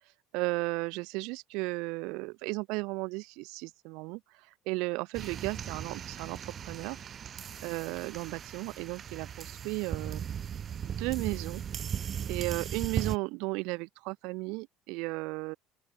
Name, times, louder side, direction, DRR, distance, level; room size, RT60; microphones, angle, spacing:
voice 1, 0.3-4.2 4.7-6.4 6.6-7.0 7.6-10.2 10.8-11.6 12.3-15.6, right 26 dB, 80° right, 0.3 m, -34 dB
sound 1, 5.1-13.2, right 8 dB, 40° right, 1.5 m, -38 dB
open air
cardioid pair, 110°, 0 cm